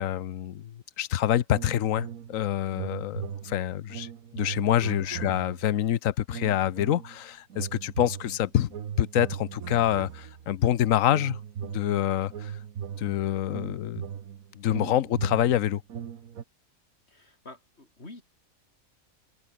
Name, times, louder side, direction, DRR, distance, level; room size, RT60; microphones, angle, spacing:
voice 1, 0.0-8.7 9.0-12.6 13.0-14.1 14.6-15.8, left 11 dB, 70° left, 1.2 m, -26 dB
sound 1, 1.5-2.4 2.7-5.8 6.3-7.2 7.5-10.6 11.1-16.4, right 8 dB, 75° right, 1.6 m, -39 dB
voice 2, 5.0-5.4 17.1-18.2, left 2 dB, 45° left, 4.6 m, -48 dB
omnidirectional pair, 1.5 m